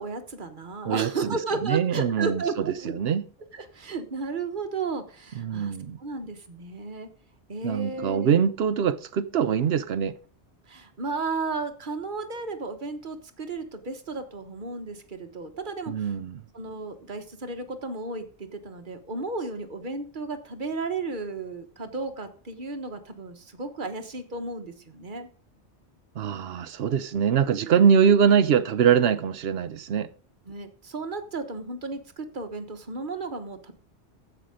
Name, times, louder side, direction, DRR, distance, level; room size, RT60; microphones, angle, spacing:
voice 1, 0.0-2.9 3.5-7.1 7.5-8.4 10.7-16.1 16.5-25.3 30.5-33.7, right 3 dB, 45° right, 1.3 m, -34 dB
voice 2, 0.8-3.2 5.4-6.0 7.6-10.2 15.9-16.4 26.2-30.1, right 7 dB, 65° right, 0.9 m, -23 dB
9.9 x 7.7 x 5.0 m
omnidirectional pair, 1.2 m